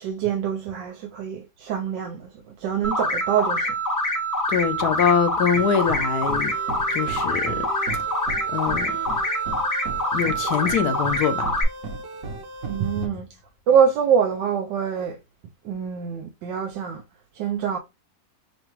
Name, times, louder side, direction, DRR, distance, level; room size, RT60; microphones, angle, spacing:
voice 1, 0.0-2.3 2.6-3.7 12.7-13.2 13.7-15.2 15.6-17.0 17.3-17.8, right 7 dB, 85° right, 1.3 m, -24 dB
sound 1, 2.8-11.6, equal, 15° left, 0.7 m, -25 dB
voice 2, 4.5-6.5 6.9-7.7 8.5-8.9 10.1-11.5, left 7 dB, 70° left, 1.1 m, -23 dB
sound 2, 5.5-13.1, right 3 dB, 55° right, 1.1 m, -35 dB
5.8 x 2.2 x 3.0 m
omnidirectional pair, 1.9 m